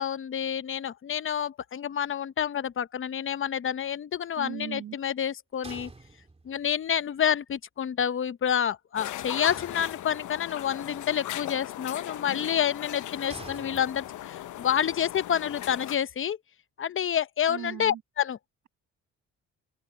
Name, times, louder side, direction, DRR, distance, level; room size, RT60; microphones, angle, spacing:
voice 1, 0.0-5.9 6.4-16.4 16.8-18.4, left 9 dB, 45° left, 0.8 m, -28 dB
voice 2, 4.4-5.0 17.5-18.0, right 10 dB, 70° right, 1.5 m, -38 dB
sound 1, 5.6-6.7 9.5-10.5 13.3-14.4, right 3 dB, 20° right, 3.2 m, -47 dB
sound 2, 9.0-16.0, left 13 dB, 75° left, 1.0 m, -38 dB
cardioid pair, 90°, 30 cm